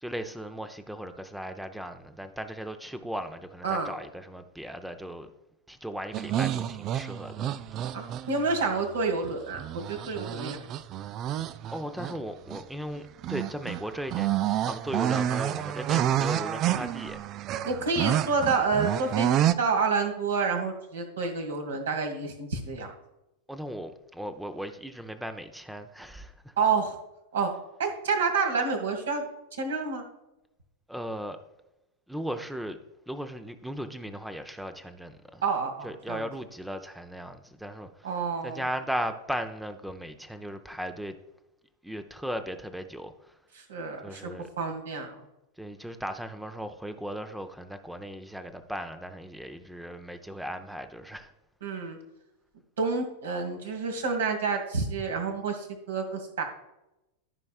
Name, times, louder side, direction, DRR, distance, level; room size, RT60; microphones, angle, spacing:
voice 1, 0.0-5.3 5.7-7.6 11.7-17.3 23.5-26.6 30.9-31.4 32.1-32.8 33.1-35.4 35.8-38.1 38.4-41.1 41.8-43.4 44.0-44.5 45.6-51.3, equal, 5° right, 0.6 m, -37 dB
sound 1, 6.1-8.6 9.2-12.2 12.5-12.6 13.2-19.5, right 11 dB, 35° right, 0.3 m, -29 dB
voice 2, 7.9-10.6 17.6-22.9 26.6-26.9 27.3-27.5 27.8-29.2 29.6-30.0 35.4-36.3 38.0-38.6 43.7-44.3 44.6-45.1 51.6-52.0 52.8-56.4, right 4 dB, 65° right, 1.8 m, -29 dB
14.0 x 5.4 x 2.4 m
figure-of-eight pair, 90°, 0 cm